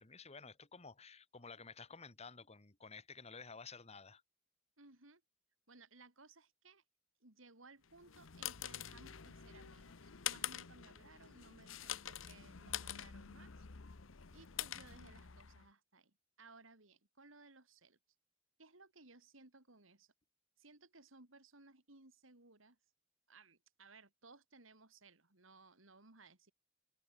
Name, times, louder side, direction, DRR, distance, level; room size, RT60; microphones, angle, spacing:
voice 1, 0.0-4.2, left 5 dB, 35° left, 1.8 m, -53 dB
voice 2, 4.8-5.2 5.7-6.8 7.2-13.6 14.3-18.0 18.6-20.1 20.6-22.8 23.3-26.5, right 3 dB, 85° right, 4.1 m, -61 dB
sound 1, 7.9-15.7, left 10 dB, 85° left, 1.0 m, -46 dB
head